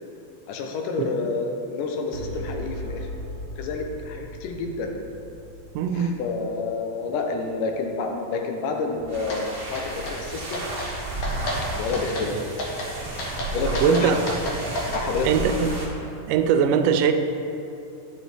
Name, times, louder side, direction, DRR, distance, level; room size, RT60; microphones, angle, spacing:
voice 1, 0.5-3.1 3.6-4.9 5.9-10.6 11.7-12.3 13.5-14.2 14.9-15.3, left 4 dB, 85° left, 3 dB, 2.3 m, -29 dB
voice 2, 1.0-1.3 5.8-6.2 13.8-14.4 15.2-15.7 16.3-17.1, right 7 dB, 90° right, 8 dB, 2.1 m, -21 dB
sound 1, 2.1-8.8, equal, 65° right, 2.0 m, -39 dB
sound 2, 8.9-15.9, right 2 dB, 45° right, 1.4 m, -32 dB
sound 3, 9.3-9.4 9.8-10.2 10.5-10.9 11.2-11.6 11.9-12.3 12.6-12.9 13.2-15.0, left 1 dB, 60° left, 1.8 m, -31 dB
10.0 x 6.8 x 3.3 m, 2.8 s
omnidirectional pair, 3.6 m